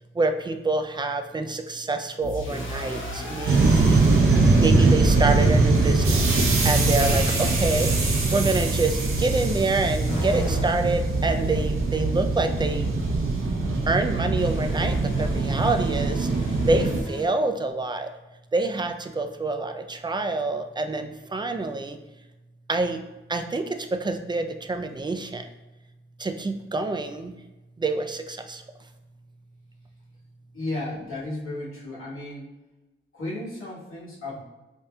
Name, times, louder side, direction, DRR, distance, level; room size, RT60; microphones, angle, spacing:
voice 1, 0.1-4.0 4.6-7.9 8.3-12.9 13.9-16.3 16.7-18.1 18.5-22.0 22.7-23.0 23.3-25.5 26.2-27.3 27.8-28.6, right 3 dB, 20° right, 6 dB, 0.3 m, -27 dB
sound 1, 2.2-5.5 6.3-8.8 10.1-12.2 14.4-17.2, equal, 70° left, 0.9 m, -34 dB
sound 2, 3.5-17.0, right 3 dB, 80° right, 0.6 m, -22 dB
voice 2, 30.5-32.5 33.1-34.4, left 2 dB, 90° left, -7 dB, 1.3 m, -34 dB
4.7 x 2.7 x 2.2 m, 1.1 s
wide cardioid pair, 70°, 21 cm